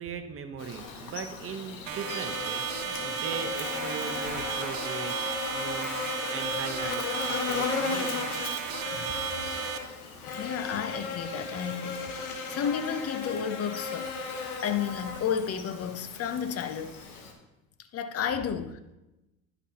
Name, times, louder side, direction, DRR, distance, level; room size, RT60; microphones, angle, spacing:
voice 1, 0.0-8.4, right 6 dB, 30° right, 1.0 m, -39 dB
Buzz, 0.6-17.3, left 4 dB, 90° left, 1.3 m, -35 dB
sound 1, 1.9-9.8, right 10 dB, 55° right, 0.7 m, -35 dB
voice 2, 10.3-14.1 14.6-17.0 17.9-18.9, left 8 dB, 35° left, 0.8 m, -32 dB
11.0 x 5.4 x 2.9 m
hypercardioid pair, 85°, 42 cm